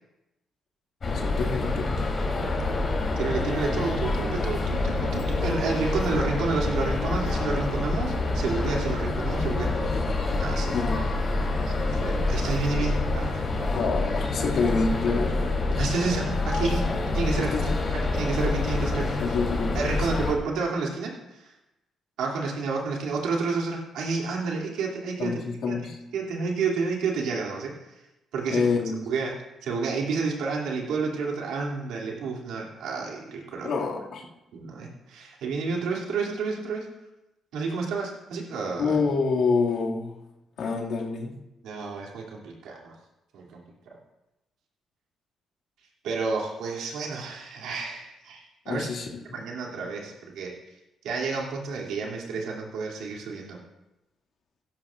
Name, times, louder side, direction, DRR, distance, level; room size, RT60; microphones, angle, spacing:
sound 1, 1.0-20.3, left 2 dB, 45° left, 3.3 m, -27 dB
voice 1, 1.1-2.1 10.7-11.2 13.7-15.4 17.4-17.6 19.2-20.0 25.2-26.0 28.5-29.1 33.6-34.2 38.8-40.2 40.6-41.3 48.7-49.2, left 4 dB, 70° left, -2 dB, 2.1 m, -27 dB
voice 2, 3.2-9.9 10.4-10.8 11.7-13.4 13.7-13.8 15.8-17.5 17.9-19.2 19.7-21.5 22.2-25.4 25.7-25.8 26.1-27.7 28.3-28.7 29.1-29.4 29.6-33.7 34.5-36.9 37.5-38.9 41.6-42.9 43.3-43.6 46.0-48.9 49.3-50.5 51.0-53.6, right 4 dB, 85° right, -1 dB, 2.7 m, -30 dB
16.5 x 13.0 x 2.5 m, 0.95 s
cardioid pair, 90°, 0 cm